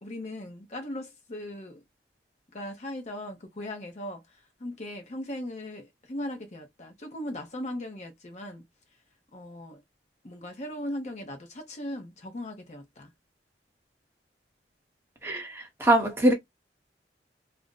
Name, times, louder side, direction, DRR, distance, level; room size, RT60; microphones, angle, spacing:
voice 1, 0.0-1.8 2.5-4.2 4.6-8.6 9.3-9.8 10.2-13.1, left 1 dB, 40° left, 0.7 m, -38 dB
voice 2, 15.2-16.3, right 1 dB, 15° right, 0.9 m, -23 dB
2.5 x 2.1 x 3.6 m
head